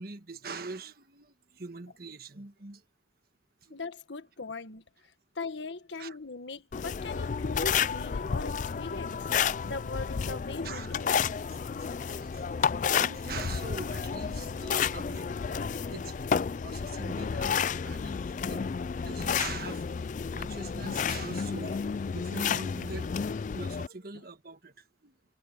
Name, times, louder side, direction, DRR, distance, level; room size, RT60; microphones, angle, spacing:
voice 1, 0.0-2.8 3.6-3.8 6.0-6.2 10.6-11.0 11.5-11.6 12.1-15.3 15.9-18.7 18.9-19.9 20.2-21.8 22.1-23.2 23.5-24.7 25.0-25.1, right 4 dB, 50° right, 1.5 m, -43 dB
voice 2, 3.7-4.8 5.3-11.2 15.8-15.9, left 3 dB, 75° left, 1.5 m, -40 dB
sound 1, 6.7-23.9, left 6 dB, 40° left, 0.3 m, -31 dB
sound 2, 6.8-20.9, equal, 5° right, 6.4 m, -53 dB
head